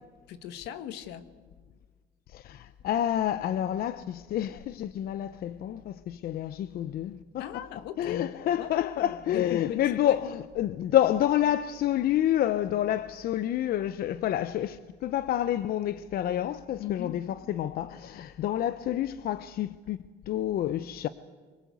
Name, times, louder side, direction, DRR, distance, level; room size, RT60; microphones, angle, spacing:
voice 1, 0.3-1.3 7.4-8.3 8.6-10.2 16.8-17.1, left 11 dB, 85° left, 1.6 m, -38 dB
voice 2, 2.3-7.6 8.0-20.0 20.3-21.1, left 11 dB, 65° left, 0.7 m, -28 dB
23.5 x 21.0 x 8.2 m
cardioid pair, 110°, 17 cm